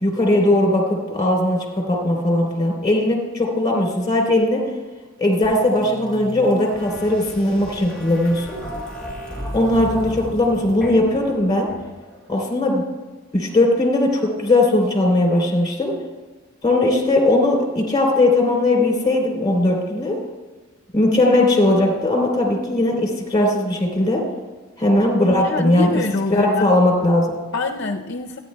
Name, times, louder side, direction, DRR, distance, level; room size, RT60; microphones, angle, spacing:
voice 1, 0.0-4.6 5.2-8.6 9.5-11.7 12.3-12.8 13.3-15.9 16.6-20.2 20.9-24.2 24.8-25.9 26.3-27.4, left 1 dB, 20° left, 0 dB, 3.5 m, -18 dB
sound 1, 5.4-12.2, equal, 5° left, 4.5 m, -34 dB
voice 2, 25.4-26.7 27.5-28.4, left 3 dB, 55° left, 3 dB, 0.6 m, -25 dB
27.5 x 10.0 x 2.3 m, 1.3 s
head